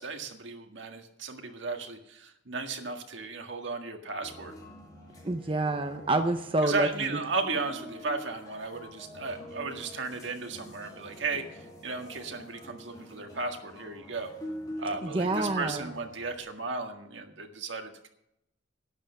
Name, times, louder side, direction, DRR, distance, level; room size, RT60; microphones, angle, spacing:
voice 1, 0.0-4.5 6.6-14.3 14.8-18.1, right 3 dB, 75° right, 4 dB, 1.8 m, -35 dB
sound 1, 4.2-16.4, equal, 20° left, 2.5 m, -45 dB
voice 2, 5.2-7.2 15.0-15.9, right 2 dB, 30° right, 6 dB, 0.7 m, -28 dB
12.0 x 9.7 x 6.8 m, 0.79 s
head